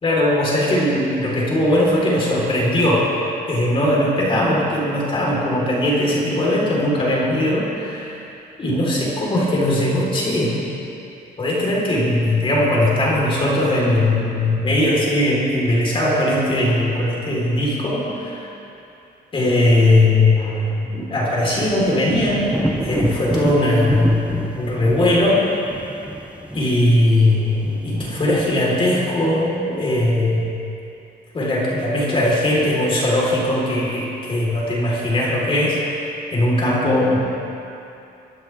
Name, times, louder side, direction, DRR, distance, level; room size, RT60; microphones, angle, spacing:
voice 1, 0.0-3.1 3.5-8.2 8.6-10.7 11.4-18.5 19.3-22.5 22.8-24.2 24.6-25.4 26.5-30.4 31.3-37.2, left 1 dB, 30° left, -5 dB, 4.0 m, -19 dB
sound 1, 21.4-29.0, right 1 dB, 5° right, 0.7 m, -29 dB
25.0 x 12.0 x 3.5 m, 2.8 s
cardioid pair, 150°, 18 cm